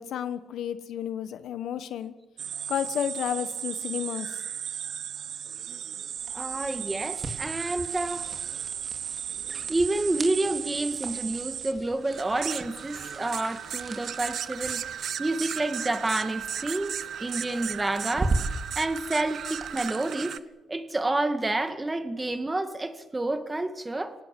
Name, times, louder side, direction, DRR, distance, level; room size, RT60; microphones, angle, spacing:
voice 1, 0.0-2.1 2.7-4.4, left 9 dB, 75° left, 12 dB, 1.4 m, -32 dB
sound 1, 2.4-20.4, right 9 dB, 65° right, 0.8 m, -35 dB
sound 2, 6.2-19.7, right 3 dB, 35° right, 3.8 m, -38 dB
voice 2, 6.3-8.3 9.7-14.8 15.2-16.9 17.2-18.4 18.8-20.4 20.7-24.1, right 2 dB, 15° right, 9 dB, 2.1 m, -29 dB
24.5 x 18.0 x 8.6 m, 1.1 s
cardioid pair, 90°, 0 cm